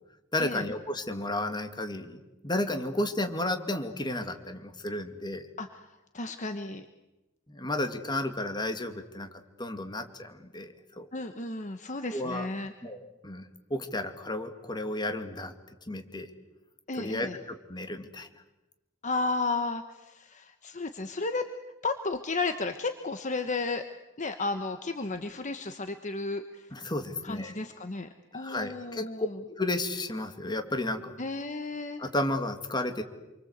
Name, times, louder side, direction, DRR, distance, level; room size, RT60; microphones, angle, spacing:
voice 1, 0.3-5.5 7.5-9.3 9.6-11.1 12.1-12.5 12.8-15.5 15.9-16.3 16.9-18.3 26.7-27.5 28.3-29.1 29.5-31.1 32.0-33.0, left 1 dB, 20° left, 6 dB, 2.2 m, -33 dB
voice 2, 6.1-6.8 11.1-12.7 16.9-17.4 19.0-21.5 21.8-23.8 24.2-26.7 27.2-29.4 31.2-32.0, left 3 dB, 35° left, 8 dB, 1.2 m, -33 dB
28.0 x 24.0 x 8.1 m, 1.0 s
head